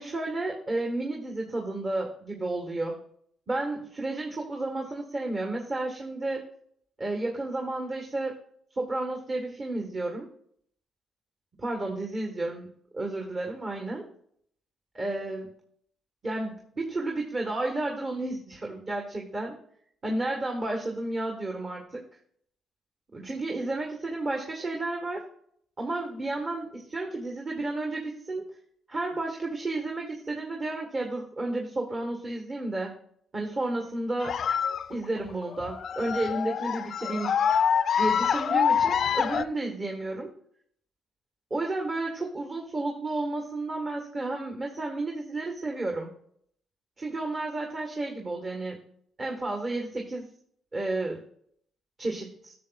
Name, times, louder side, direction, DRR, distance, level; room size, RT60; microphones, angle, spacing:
voice 1, 0.0-3.0 3.5-6.4 7.0-8.3 8.8-10.3 11.6-14.1 14.9-15.5 16.2-19.6 20.0-22.0 23.1-25.2 25.8-28.5 28.9-32.9 33.3-34.4 34.9-37.4 38.0-40.3 41.5-46.1 47.0-48.8 49.2-50.3 50.7-51.2 52.0-52.5, right 2 dB, 35° right, 1 dB, 1.5 m, -32 dB
sound 1, 34.2-39.4, left 7 dB, 55° left, 0.4 m, -26 dB
12.0 x 7.1 x 2.4 m, 0.64 s
cardioid pair, 90°, 0 cm